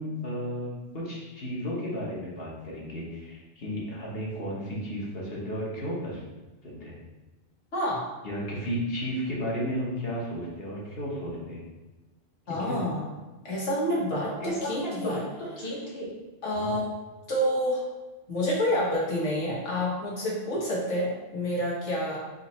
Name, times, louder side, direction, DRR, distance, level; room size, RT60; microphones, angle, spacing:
voice 1, 0.0-6.2 6.6-7.0 8.2-11.6 12.5-12.8 14.4-16.0 16.5-16.8, equal, 55° left, -5 dB, 1.3 m, -33 dB
voice 2, 7.7-8.0 12.5-13.1 13.4-15.2 16.4-16.8 17.3-17.8 18.3-22.2, equal, 80° left, -5 dB, 1.6 m, -28 dB
4.0 x 2.9 x 4.2 m, 1.2 s
omnidirectional pair, 1.2 m